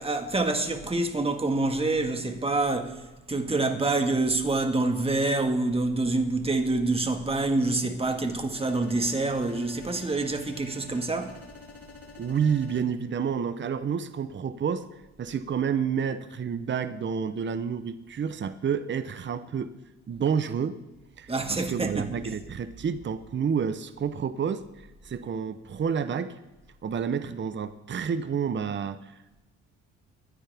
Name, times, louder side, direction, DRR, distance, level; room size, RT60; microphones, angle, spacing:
voice 1, 0.0-3.0 3.3-11.4 21.3-22.3, right 2 dB, 20° right, 1.8 m, -26 dB
sound 1, 8.5-12.8, left 3 dB, 55° left, 3.0 m, -47 dB
voice 2, 12.2-14.8 15.2-19.7 20.1-20.8 21.2-26.4 26.8-29.4, right 7 dB, 40° right, 0.8 m, -29 dB
23.0 x 9.9 x 3.5 m
cardioid pair, 90°, 30 cm